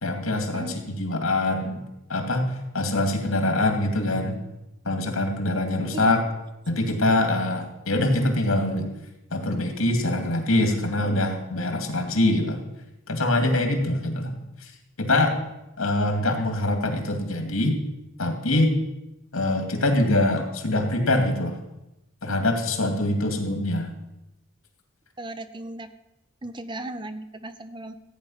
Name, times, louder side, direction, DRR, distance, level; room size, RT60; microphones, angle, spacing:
voice 1, 0.0-1.8 2.1-4.4 4.8-6.2 6.7-8.9 9.3-12.6 13.1-14.3 14.6-14.7 15.0-15.3 15.8-17.8 18.2-18.8 19.3-21.6 22.2-23.9, left 1 dB, 85° left, 4 dB, 2.4 m, -24 dB
voice 2, 25.2-25.9 26.4-27.9, right 1 dB, 20° right, 11 dB, 0.6 m, -36 dB
15.0 x 9.4 x 5.6 m, 0.93 s
head